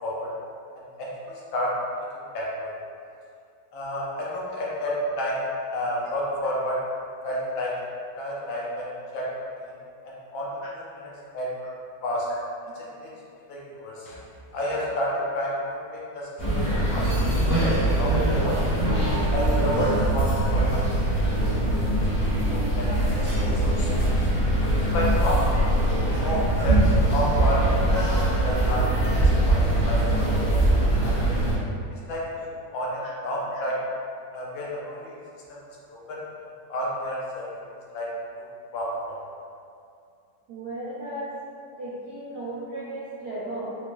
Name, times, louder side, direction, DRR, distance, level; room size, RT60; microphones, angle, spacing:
voice 1, 1.0-1.7 2.3-2.7 3.7-5.4 5.7-6.8 7.2-7.7 8.2-9.3 9.6-9.7 10.3-10.5 10.7-11.5 12.0-12.3 12.8-13.1 13.5-14.2 14.5-17.0 17.6-17.7 18.0-18.6 19.3-21.3 21.7-21.8 22.5-22.9 23.1-24.1 24.8-25.7 26.2-28.1 28.4-28.9 29.5-29.6 29.9-30.0 30.2-30.6 31.0-31.2 32.1-32.5 32.7-33.8 34.3-35.1 35.5-35.6 35.9-36.2 36.7-37.5 37.9-38.1 38.7-39.1, equal, 75° left, -5 dB, 1.4 m, -30 dB
sound 1, 16.4-31.5, right 1 dB, 5° left, 1.0 m, -22 dB
voice 2, 40.5-41.3 41.8-43.7, right 1 dB, 70° right, -9 dB, 1.0 m, -35 dB
3.8 x 3.1 x 2.2 m, 2.4 s
omnidirectional pair, 2.2 m